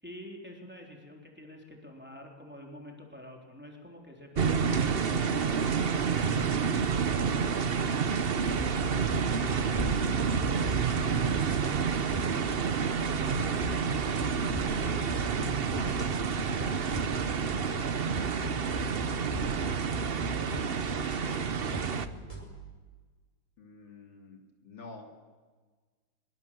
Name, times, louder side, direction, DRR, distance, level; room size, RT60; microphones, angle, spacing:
voice 1, 0.0-5.7 6.2-7.6 8.3-8.8 9.4-10.0 10.8-11.3 11.5-16.0 16.4-17.5, left 1 dB, 5° right, 0 dB, 3.7 m, -48 dB
sound 1, 4.3-22.1, right 6 dB, 60° right, 0.6 m, -29 dB
sound 2, 8.6-22.4, equal, 15° left, 5.1 m, -39 dB
voice 2, 20.9-21.6 23.6-25.1, left 3 dB, 65° left, 3 dB, 3.5 m, -49 dB
23.0 x 22.5 x 7.8 m, 1.4 s
omnidirectional pair, 2.3 m